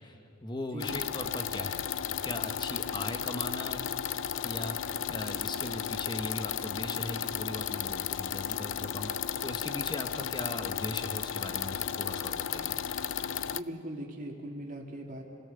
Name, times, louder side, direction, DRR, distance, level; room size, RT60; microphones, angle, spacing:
voice 1, 0.0-4.0 4.4-12.8, left 1 dB, 25° left, 7 dB, 1.1 m, -39 dB
sound 1, 0.8-13.6, left 9 dB, 75° left, 0.5 m, -34 dB
voice 2, 13.4-15.2, right 1 dB, 45° right, 0 dB, 2.6 m, -40 dB
27.0 x 16.5 x 6.9 m, 2.7 s
head